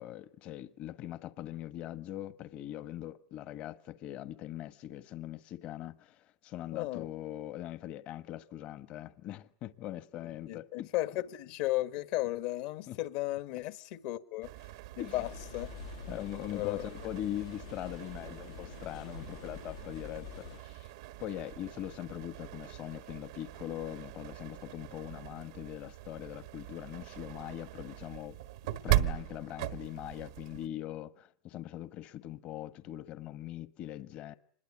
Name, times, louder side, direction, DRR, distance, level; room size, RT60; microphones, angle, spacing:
voice 1, 0.0-10.9 12.9-13.0 15.0-15.2 16.1-20.9 21.2-28.4 28.8-34.4, left 13 dB, 45° left, 1.3 m, -41 dB
voice 2, 6.7-7.1 10.5-14.5 15.0-15.7 16.5-16.9, left 17 dB, 60° left, 1.6 m, -35 dB
sound 1, 14.4-30.7, right 15 dB, 75° right, 1.4 m, -39 dB
sound 2, 15.1-20.6, left 11 dB, 90° left, 2.0 m, -48 dB
25.5 x 21.5 x 9.8 m
supercardioid pair, 130°, 3 cm